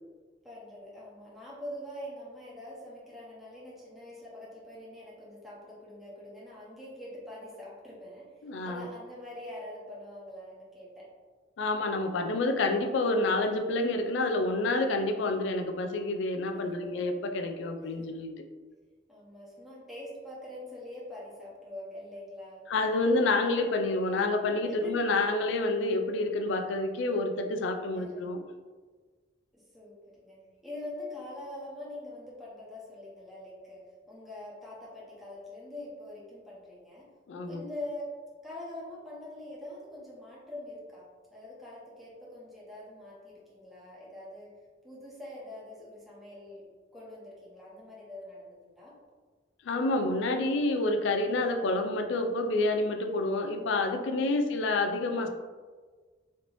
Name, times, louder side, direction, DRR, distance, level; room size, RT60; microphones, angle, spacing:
voice 1, 0.4-8.3 8.6-11.1 16.5-17.0 18.0-18.1 19.1-22.6 24.6-25.1 27.9-28.3 29.5-29.9 30.2-30.4 30.6-37.1 37.4-38.1 38.4-41.0 41.3-44.5 44.8-46.6 46.9-48.9 54.2-54.5, left 1 dB, ahead, -8 dB, 0.9 m, -44 dB
voice 2, 8.4-8.9 11.6-18.3 22.7-28.4 37.3-37.6 49.6-55.3, left 2 dB, 70° left, 5 dB, 0.4 m, -28 dB
3.2 x 3.0 x 2.6 m, 1.4 s
head